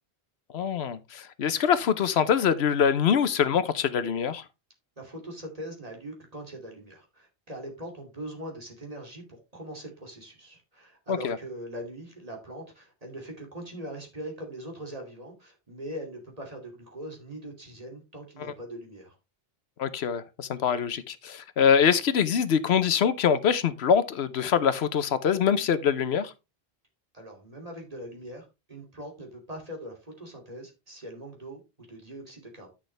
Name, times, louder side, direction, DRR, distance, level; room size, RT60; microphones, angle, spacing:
voice 1, 0.5-4.4 11.1-11.4 18.4-18.5 19.8-26.3, left 7 dB, 85° left, 1.0 m, -24 dB
voice 2, 5.0-9.2 9.5-19.1 27.1-31.6 31.9-32.7, right 1 dB, 35° right, 2.7 m, -41 dB
9.8 x 6.3 x 3.3 m
omnidirectional pair, 1.0 m